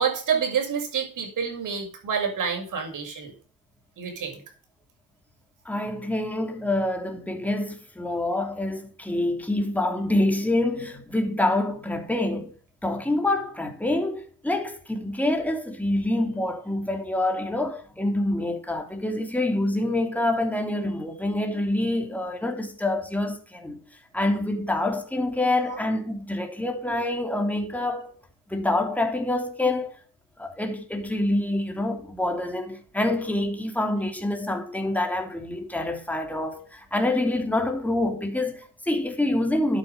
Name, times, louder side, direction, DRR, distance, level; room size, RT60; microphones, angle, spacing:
voice 1, 0.0-3.3 4.0-4.4 25.7-25.8, right 6 dB, 55° right, 6.7 m, -28 dB
voice 2, 5.6-12.5 12.8-23.8 24.1-28.1 28.5-30.0 30.4-39.8, left 1 dB, 5° left, 3.2 m, -26 dB
12.0 x 9.6 x 5.5 m
cardioid pair, 95°, 38 cm